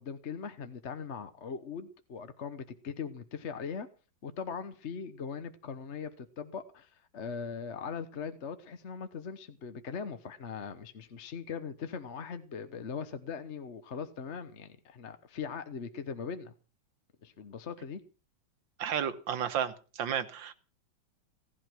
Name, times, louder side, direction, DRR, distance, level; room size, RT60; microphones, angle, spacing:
voice 1, 0.0-3.9 4.2-16.5 17.2-18.0, left 6 dB, 45° left, 1.1 m, -40 dB
voice 2, 18.8-20.5, right 8 dB, 85° right, 1.9 m, -32 dB
17.0 x 11.5 x 6.1 m
omnidirectional pair, 2.0 m